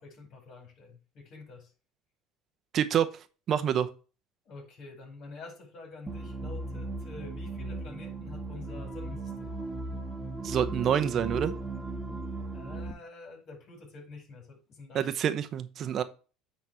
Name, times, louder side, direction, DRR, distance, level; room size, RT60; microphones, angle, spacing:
voice 1, 0.0-1.7 4.4-9.6 12.5-15.1, left 3 dB, 55° left, 4.8 m, -47 dB
voice 2, 2.7-3.1 3.5-3.9 10.4-11.5 14.9-16.0, right 9 dB, 50° right, 0.9 m, -27 dB
sound 1, 6.1-12.9, right 2 dB, 5° right, 1.6 m, -37 dB
9.6 x 4.1 x 4.5 m
supercardioid pair, 90°, 0 cm